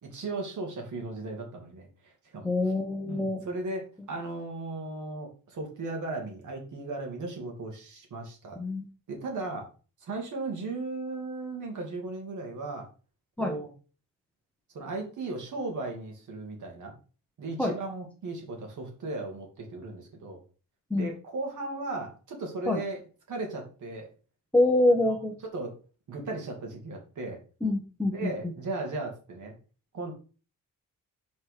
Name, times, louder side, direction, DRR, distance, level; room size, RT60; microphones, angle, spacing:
voice 1, 0.0-2.5 3.0-8.6 9.1-9.7 10.0-12.9 13.4-13.7 14.7-16.9 17.4-20.4 20.9-23.0 23.3-24.1 25.0-25.1 25.4-25.7 26.1-27.4 28.1-29.5 29.9-30.1, right 2 dB, 65° right, 1 dB, 2.4 m, -36 dB
voice 2, 2.4-3.4 8.6-8.8 13.4-13.5 17.6-17.7 20.9-21.1 22.7-22.8 24.5-25.3 27.6-28.3, left 2 dB, 5° left, 1 dB, 0.8 m, -25 dB
6.3 x 4.3 x 4.9 m, 0.37 s
wide cardioid pair, 175°, 32 cm